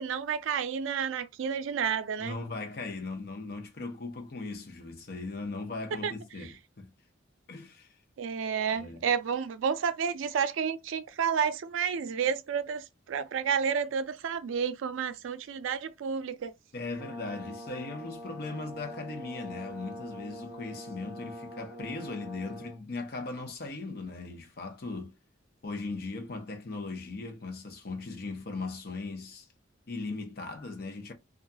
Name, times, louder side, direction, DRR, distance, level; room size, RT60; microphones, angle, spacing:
voice 1, 0.0-2.4 6.0-6.1 8.2-16.5, right 7 dB, 85° right, 0.4 m, -30 dB
voice 2, 2.2-6.9 7.5-8.0 8.7-9.1 16.7-25.1 25.6-29.5 29.9-31.1, left 3 dB, 50° left, 0.6 m, -38 dB
Brass instrument, 17.0-22.8, equal, 20° right, 0.7 m, -44 dB
2.4 x 2.2 x 2.6 m
head